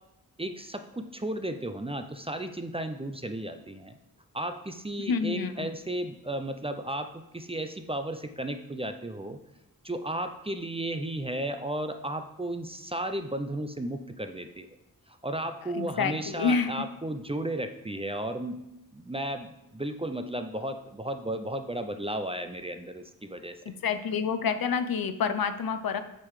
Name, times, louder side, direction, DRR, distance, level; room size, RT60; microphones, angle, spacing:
voice 1, 0.4-3.9 4.3-9.4 9.8-14.7 15.1-18.6 18.9-23.6, right 1 dB, 15° right, 7 dB, 0.5 m, -34 dB
voice 2, 5.1-5.7 15.7-16.7 23.8-26.0, left 6 dB, 70° left, 10 dB, 0.6 m, -28 dB
7.5 x 3.8 x 4.8 m, 0.88 s
wide cardioid pair, 65°, 36 cm